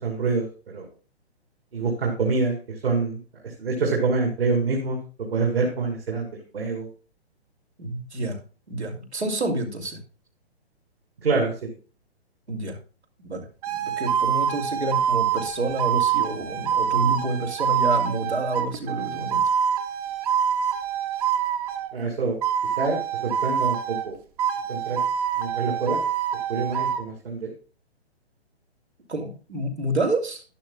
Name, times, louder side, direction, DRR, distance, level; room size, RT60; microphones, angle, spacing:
voice 1, 0.0-0.9 1.7-2.6 2.8-3.2 3.4-6.2 6.5-6.9 11.2-11.7 21.9-22.4 22.8-23.0 23.2-24.2 24.7-25.0 25.4-26.0 26.5-27.5, right 4 dB, 65° right, 1 dB, 2.5 m, -26 dB
voice 2, 7.8-8.4 8.7-10.0 12.5-12.8 13.2-13.4 13.7-19.4 29.1-30.4, right 2 dB, 80° right, 2 dB, 2.6 m, -28 dB
sound 1, 13.6-21.9 22.4-24.1 24.4-27.0, right 8 dB, 35° right, 1.0 m, -25 dB
12.0 x 10.5 x 2.2 m, 0.34 s
figure-of-eight pair, 130°, 33 cm